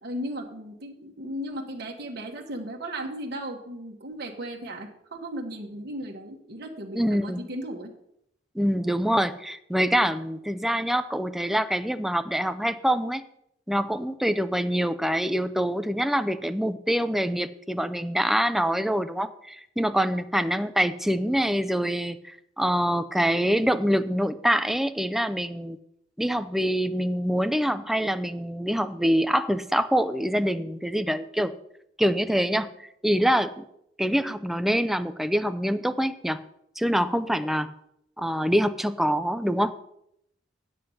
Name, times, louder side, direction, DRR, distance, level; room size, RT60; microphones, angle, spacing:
voice 1, 0.0-7.9, right 1 dB, 60° right, 1 dB, 1.3 m, -36 dB
voice 2, 6.9-7.4 8.6-13.2 13.7-22.2 22.6-25.8 26.2-31.5 32.0-33.6 34.0-36.4 36.8-37.7 38.2-39.7, equal, ahead, 10 dB, 0.4 m, -25 dB
9.3 x 7.6 x 5.5 m, 0.75 s
head